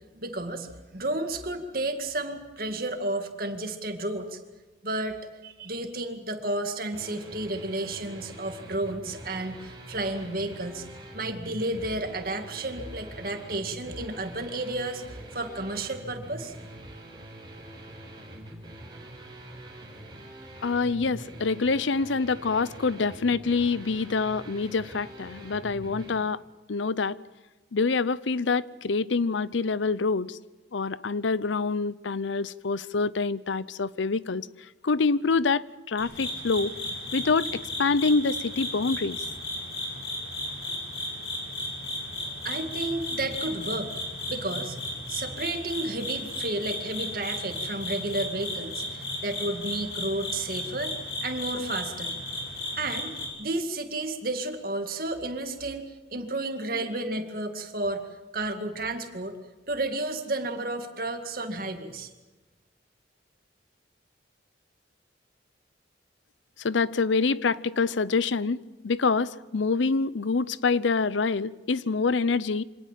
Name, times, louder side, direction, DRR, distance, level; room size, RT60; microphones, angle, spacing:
voice 1, 0.1-4.4 4.8-10.9 11.1-16.5 42.4-43.9 44.3-44.8 45.1-52.1 52.8-58.1 58.3-59.3 59.7-62.1, right 2 dB, 50° right, 2.2 m, -32 dB
sound 1, 6.9-26.1, right 1 dB, 25° right, 4.4 m, -44 dB
voice 2, 20.6-26.4 26.7-27.2 27.7-30.4 30.7-34.5 34.8-36.7 37.1-39.2 66.6-72.6, left 4 dB, 85° left, 0.6 m, -26 dB
sound 2, 36.0-53.3, left 1 dB, 60° left, 7.8 m, -34 dB
25.5 x 18.0 x 7.5 m
head